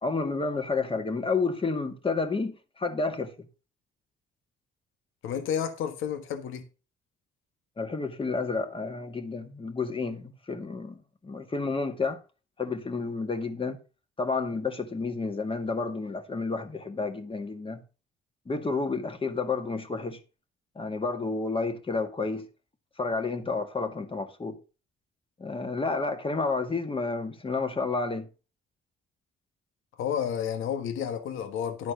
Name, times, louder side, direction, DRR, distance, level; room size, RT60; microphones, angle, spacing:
voice 1, 0.0-3.5 7.8-12.2 12.6-13.8 14.2-17.8 18.5-20.2 20.8-22.5 23.0-24.6 25.4-28.3, left 4 dB, 25° left, 2.0 m, -30 dB
voice 2, 5.2-6.6 30.0-31.9, left 8 dB, 85° left, 1.3 m, -31 dB
11.5 x 4.2 x 6.7 m
cardioid pair, 90°, 20 cm